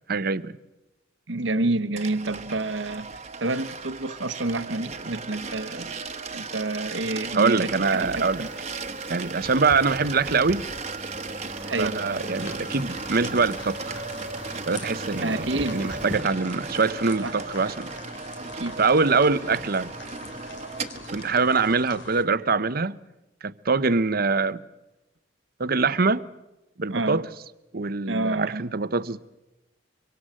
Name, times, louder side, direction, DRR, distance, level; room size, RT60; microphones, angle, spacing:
voice 1, 0.1-0.5 7.3-8.5 9.1-10.6 11.8-14.0 14.7-17.9 18.8-19.9 21.1-23.0 23.4-24.6 25.6-26.2 26.8-27.2 27.7-29.2, right 4 dB, 50° right, 0.9 m, -24 dB
voice 2, 1.3-6.0 6.3-8.5 11.7-12.0 15.2-15.8 17.2-17.3 18.6-18.8 26.9-27.3 28.1-28.7, right 2 dB, 70° right, 1.3 m, -29 dB
sound 1, 2.0-21.4, right 4 dB, 35° right, 1.4 m, -36 dB
sound 2, 7.8-16.2, right 1 dB, 5° right, 1.8 m, -42 dB
sound 3, 12.4-22.2, left 2 dB, 70° left, 2.9 m, -43 dB
24.5 x 24.5 x 7.6 m
head